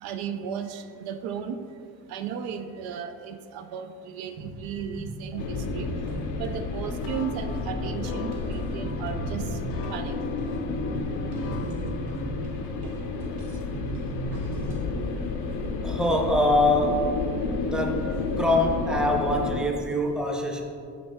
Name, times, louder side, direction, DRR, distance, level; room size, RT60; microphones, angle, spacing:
voice 1, 0.0-1.6 2.1-5.9 6.4-9.5 9.9-10.2, right 8 dB, 70° right, 8 dB, 0.5 m, -35 dB
sound 1, 4.4-14.8, right 3 dB, 85° right, 1.0 m, -37 dB
sound 2, 5.4-19.6, left 3 dB, 75° left, 0.7 m, -31 dB
sound 3, 7.0-12.4, left 6 dB, 40° left, 0.4 m, -42 dB
voice 2, 15.8-17.1 17.6-18.1 18.4-20.6, left 1 dB, ahead, 1 dB, 0.7 m, -24 dB
6.0 x 5.4 x 3.5 m, 2.3 s
supercardioid pair, 95°, 38 cm